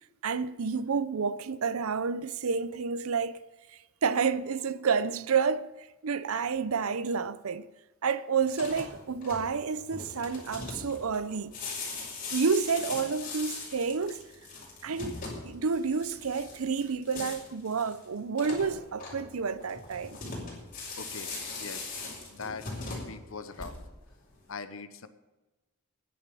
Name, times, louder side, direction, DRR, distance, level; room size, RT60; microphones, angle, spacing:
voice 1, 0.2-3.4 4.0-5.7 6.0-7.7 8.0-11.5 12.3-14.2 14.8-15.2 15.4-20.2, right 5 dB, 85° right, 0.6 m, -29 dB
sound 1, 8.4-24.1, left 3 dB, 40° left, 5.1 m, -40 dB
voice 2, 21.0-22.0 22.3-22.7 23.0-23.7 24.5-25.1, left 4 dB, 65° left, 1.0 m, -41 dB
10.0 x 8.9 x 9.1 m
head